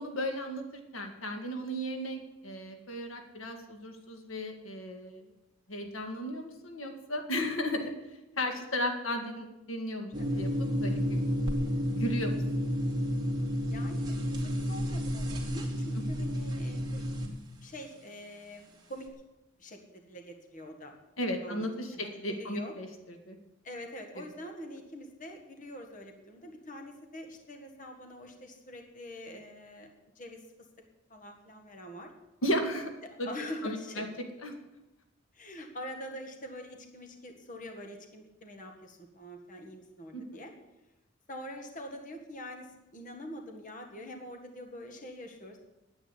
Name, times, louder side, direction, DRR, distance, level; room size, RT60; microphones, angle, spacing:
voice 1, 0.0-5.2 5.7-7.9 8.4-10.5 10.8-11.2 11.9-12.4 16.0-16.1 21.2-23.4 24.2-24.3 32.4-32.9 33.2-33.3 33.6-34.1 34.4-34.5 40.1-40.4, equal, 85° left, 4 dB, 1.9 m, -35 dB
sound 1, 10.1-17.3, equal, 20° right, 2.3 m, -31 dB
voice 2, 13.7-17.0 17.6-19.1 19.6-20.9 21.4-21.7 21.9-22.7 23.6-29.9 30.2-30.4 31.1-32.1 33.0-34.2 35.3-40.5 41.3-45.6, equal, 40° left, 3 dB, 1.8 m, -44 dB
9.6 x 9.1 x 9.8 m, 0.98 s
head